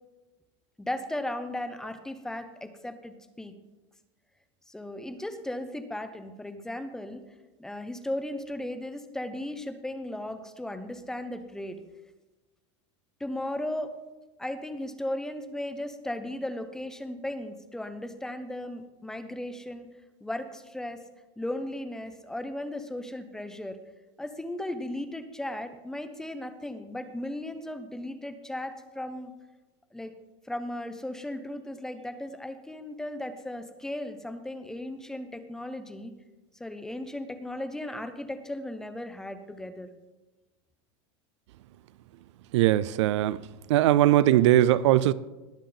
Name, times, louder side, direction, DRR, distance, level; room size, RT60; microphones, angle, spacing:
voice 1, 0.8-3.5 4.7-7.2 7.6-11.8 13.2-13.9 14.4-19.9 20.2-21.0 21.4-23.8 24.2-29.3 29.9-30.1 30.4-36.1 36.6-39.9, left 1 dB, 5° left, 0.5 m, -36 dB
voice 2, 42.5-43.4 43.7-45.1, right 13 dB, 85° right, 0.4 m, -20 dB
19.5 x 7.3 x 3.8 m
supercardioid pair, 165°, 15 cm